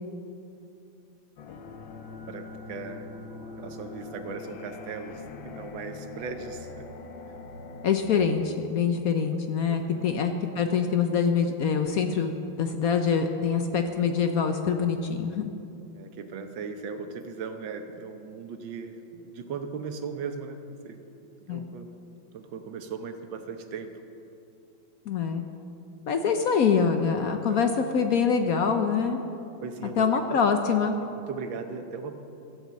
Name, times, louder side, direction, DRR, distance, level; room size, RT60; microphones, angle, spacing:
sound 1, 1.4-8.3, left 3 dB, 90° left, 1.7 m, -42 dB
voice 1, 2.2-3.1 3.6-6.9 9.3-9.4 9.7-10.0 15.9-21.0 21.4-21.9 22.3-24.0 27.5-27.6 29.6-30.4 31.0-32.1, right 5 dB, 85° right, 7 dB, 1.7 m, -38 dB
voice 2, 7.8-15.4 21.5-21.7 25.1-25.4 26.1-29.2 30.0-31.0, left 6 dB, 65° left, 6 dB, 1.0 m, -25 dB
13.5 x 8.5 x 7.5 m, 2.7 s
omnidirectional pair, 2.1 m